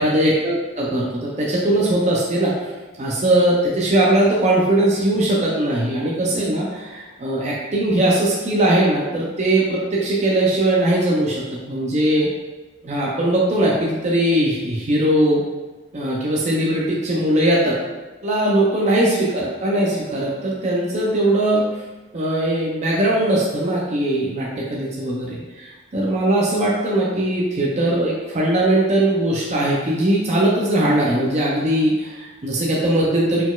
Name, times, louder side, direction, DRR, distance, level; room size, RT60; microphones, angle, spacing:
voice 1, 0.0-2.7 3.0-12.3 12.8-15.4 15.9-17.7 18.2-21.8 22.1-33.5, right 1 dB, 35° right, -4 dB, 0.5 m, -20 dB
4.1 x 4.0 x 2.3 m, 1.2 s
head